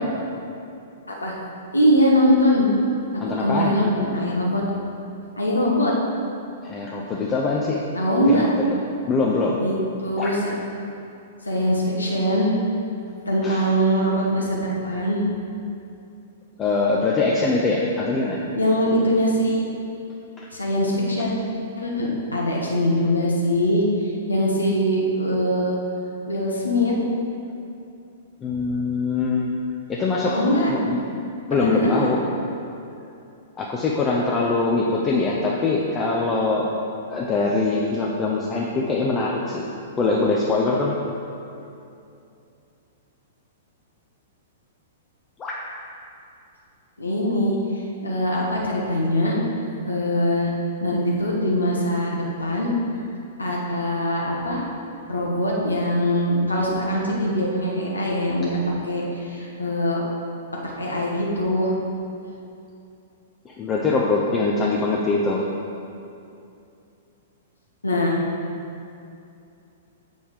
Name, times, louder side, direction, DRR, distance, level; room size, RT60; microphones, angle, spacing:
voice 1, 1.7-2.7 3.1-4.6 5.4-5.9 7.9-8.5 9.6-10.5 11.4-12.5 13.3-15.2 18.6-19.7 20.5-21.3 21.8-25.8 26.3-27.0 30.3-30.7 31.5-32.1 47.0-49.4 49.8-50.5 50.8-52.7 53.4-54.6 55.1-58.6 58.8-60.0 60.6-61.7 67.8-68.2, equal, 80° left, -3 dB, 1.1 m, -22 dB
voice 2, 3.2-3.8 6.6-7.8 8.3-8.5 9.1-9.6 10.2-10.3 13.4-13.6 16.6-18.4 20.4-20.5 28.4-29.5 29.9-31.0 31.5-32.2 33.6-36.7 37.1-39.7 40.0-40.9 45.4-45.6 63.4-65.4, left 3 dB, 20° left, -3 dB, 0.6 m, -23 dB
7.0 x 5.3 x 4.8 m, 2.6 s
figure-of-eight pair, 105°, 0 cm